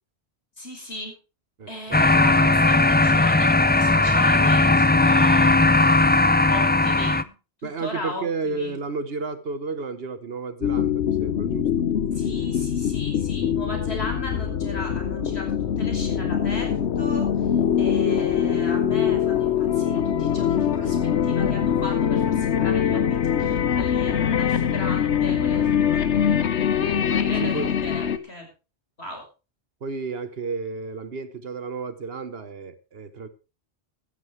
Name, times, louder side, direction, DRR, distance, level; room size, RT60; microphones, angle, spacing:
voice 1, 0.6-1.1 1.7-5.5 6.5-7.3 7.6-8.7 12.1-17.3 17.8-26.2 27.0-28.5 29.0-29.2, left 1 dB, 70° left, 5.8 m, -36 dB
voice 2, 1.6-2.0 7.6-11.7 26.9-27.7 29.8-33.3, right 4 dB, 65° right, 1.4 m, -32 dB
sound 1, 1.9-7.2, left 2 dB, 15° left, 0.3 m, -18 dB
sound 2, 10.6-28.2, left 8 dB, 90° left, 1.2 m, -23 dB
15.5 x 13.0 x 3.3 m
omnidirectional pair, 1.1 m